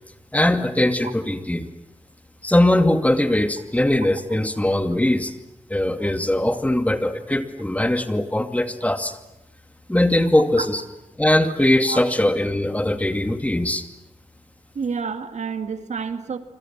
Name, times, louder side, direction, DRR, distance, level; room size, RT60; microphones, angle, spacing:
voice 1, 0.3-1.7 2.4-5.3 5.7-9.2 9.9-10.8 11.2-13.8, left 1 dB, 10° left, 8 dB, 2.4 m, -20 dB
voice 2, 14.7-16.4, right 5 dB, 90° right, 9 dB, 2.2 m, -29 dB
27.0 x 26.5 x 7.5 m, 0.95 s
wide cardioid pair, 85°, 12 cm